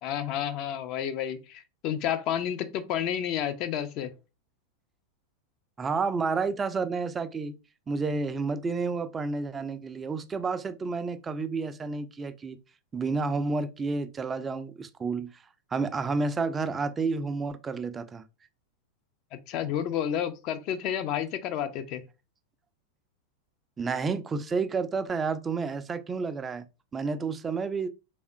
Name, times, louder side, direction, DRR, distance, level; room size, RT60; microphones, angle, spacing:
voice 1, 0.0-4.1 19.5-22.0, left 9 dB, 40° left, 0.5 m, -30 dB
voice 2, 5.8-7.5 7.9-12.6 12.9-15.3 15.7-18.2 23.8-26.6 26.9-27.9, right 4 dB, 20° right, 0.4 m, -30 dB
3.4 x 3.4 x 2.6 m
figure-of-eight pair, 90°, 0 cm